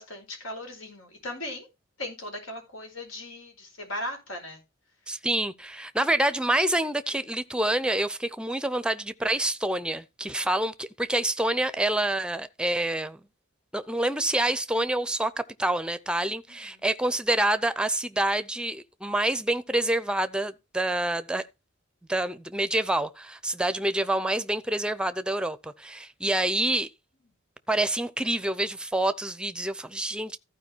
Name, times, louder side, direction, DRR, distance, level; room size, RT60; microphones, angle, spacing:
voice 1, 0.0-1.7 2.0-4.6 16.5-16.8, left 1 dB, 85° left, 4.8 m, -38 dB
voice 2, 5.1-13.2 13.7-21.4 22.1-26.9 27.7-30.4, right 1 dB, 5° right, 0.6 m, -27 dB
14.5 x 4.9 x 4.5 m
head